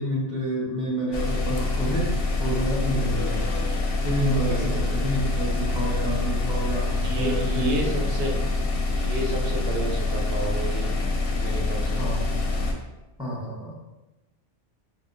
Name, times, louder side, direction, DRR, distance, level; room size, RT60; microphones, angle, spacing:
voice 1, 0.0-3.4 4.0-7.8 12.0-12.2 13.2-13.7, right 1 dB, 5° right, -6 dB, 0.9 m, -28 dB
sound 1, 1.1-12.7, left 3 dB, 60° left, 0.7 m, -26 dB
voice 2, 4.5-4.8 7.0-8.3 9.0-10.9 11.4-12.0, right 1 dB, 60° right, -1 dB, 0.8 m, -31 dB
4.6 x 2.1 x 2.6 m, 1.0 s
omnidirectional pair, 1.2 m